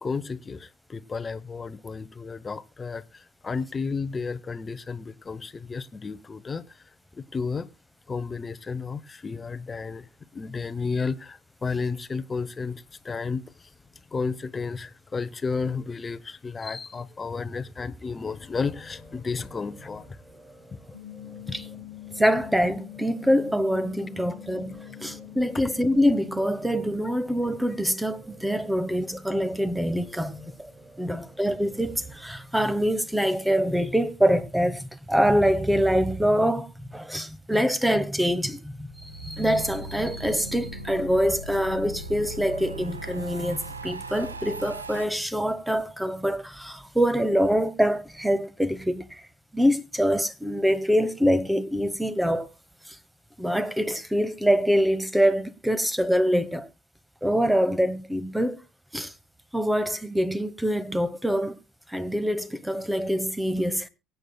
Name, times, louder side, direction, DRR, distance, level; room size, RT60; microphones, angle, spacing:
voice 1, 0.0-6.6 7.1-7.7 8.1-10.1 10.3-13.7 14.1-20.2, left 4 dB, 25° left, 0.9 m, -32 dB
sound 1, 18.2-33.2 33.6-33.7, equal, 20° right, 7.3 m, -51 dB
sound 2, 20.9-27.1, left 17 dB, 80° left, 0.9 m, -44 dB
voice 2, 22.2-30.7 31.0-49.2 49.5-52.5 52.9-53.0 53.4-56.7 57.2-58.6 58.9-59.1 59.5-61.5 61.9-63.9, equal, 5° right, 1.1 m, -25 dB
sound 3, 38.9-45.0, right 1 dB, 85° right, 0.7 m, -39 dB
23.0 x 9.3 x 2.3 m
figure-of-eight pair, 60°, 0 cm